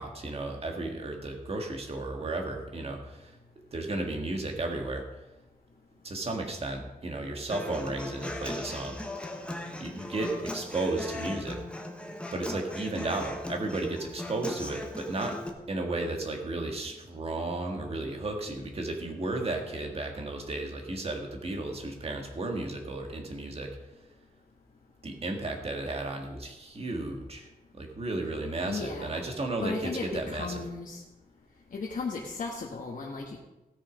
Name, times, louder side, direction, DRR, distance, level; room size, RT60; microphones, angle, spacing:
voice 1, 0.0-3.3 3.7-5.0 6.0-9.0 9.6-11.6 12.3-15.4 15.7-23.8 25.0-27.5 27.8-30.6, right 2 dB, 40° right, 2 dB, 1.7 m, -34 dB
Human voice / Acoustic guitar, 7.5-15.5, left 1 dB, 5° left, 1.2 m, -38 dB
voice 2, 28.7-29.2 29.6-31.0 31.7-33.4, left 4 dB, 55° left, -3 dB, 1.3 m, -35 dB
16.5 x 6.4 x 5.1 m, 1.0 s
wide cardioid pair, 175°, 16 cm